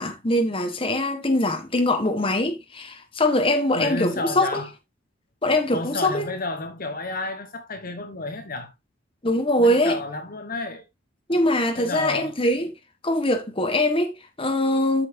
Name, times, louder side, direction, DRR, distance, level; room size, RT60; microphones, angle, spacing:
voice 1, 0.0-4.6 5.4-6.3 9.2-10.0 11.3-12.7 13.0-15.1, left 1 dB, 25° left, 1.4 m, -22 dB
voice 2, 3.7-4.7 5.7-8.7 9.6-10.8 11.8-12.4, left 2 dB, 45° left, 1.3 m, -31 dB
13.0 x 5.9 x 2.7 m
head